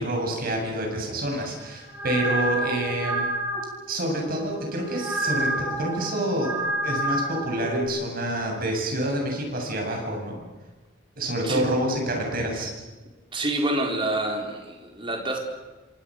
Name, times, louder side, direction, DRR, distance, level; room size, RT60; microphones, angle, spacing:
voice 1, 0.0-3.2 3.9-6.5 6.8-10.4 11.2-12.7, right 1 dB, 50° right, 1 dB, 7.9 m, -27 dB
sound 1, 1.6-7.8, right 1 dB, 10° right, 7.8 m, -29 dB
voice 2, 13.3-15.4, right 1 dB, 25° right, 2 dB, 4.2 m, -27 dB
28.5 x 26.5 x 6.6 m, 1.2 s
head